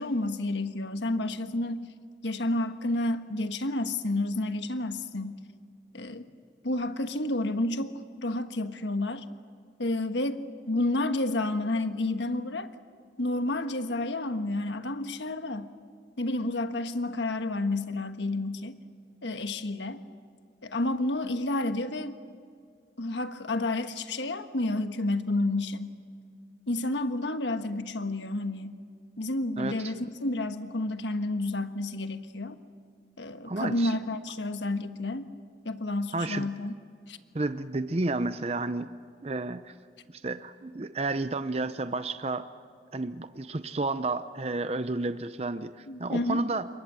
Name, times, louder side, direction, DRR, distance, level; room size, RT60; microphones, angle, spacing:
voice 1, 0.0-1.9 2.2-5.4 5.9-6.2 6.6-9.2 9.8-12.7 13.2-15.7 16.2-18.7 19.2-20.0 20.6-22.1 23.0-25.9 26.7-28.8 29.2-32.6 33.2-35.2 35.6-36.7 37.1-37.2 45.9-46.4, left 2 dB, 85° left, 8 dB, 1.4 m, -30 dB
voice 2, 29.6-29.9 33.5-34.0 36.1-36.5 37.3-38.9 39.2-39.7 40.1-42.5 42.9-46.7, right 2 dB, 35° right, 11 dB, 0.6 m, -31 dB
28.0 x 23.0 x 7.6 m, 2.1 s
head